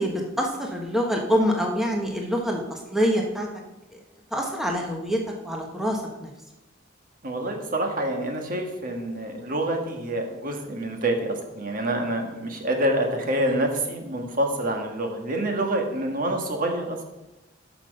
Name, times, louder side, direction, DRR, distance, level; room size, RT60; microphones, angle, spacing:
voice 1, 0.0-3.5 4.3-6.3, equal, ahead, 0 dB, 1.2 m, -26 dB
voice 2, 7.2-17.0, right 1 dB, 45° right, 3 dB, 1.5 m, -27 dB
12.5 x 6.0 x 5.3 m, 1.0 s
head